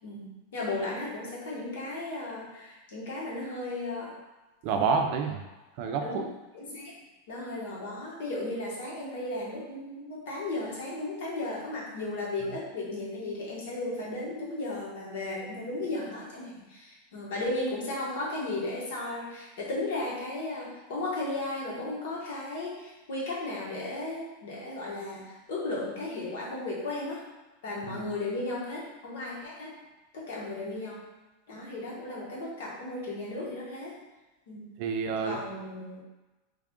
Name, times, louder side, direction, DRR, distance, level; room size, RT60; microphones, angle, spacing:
voice 1, 0.0-4.1 6.0-6.9 7.3-27.2 27.6-29.7 30.1-31.0 31.5-33.9 34.5-34.7 35.2-36.0, left 2 dB, 70° left, -5 dB, 1.3 m, -35 dB
voice 2, 4.6-5.4 5.8-6.2 27.9-28.0 34.8-35.4, right 5 dB, 45° right, 4 dB, 0.4 m, -28 dB
3.3 x 2.4 x 3.6 m, 1.1 s
supercardioid pair, 160°, 0 cm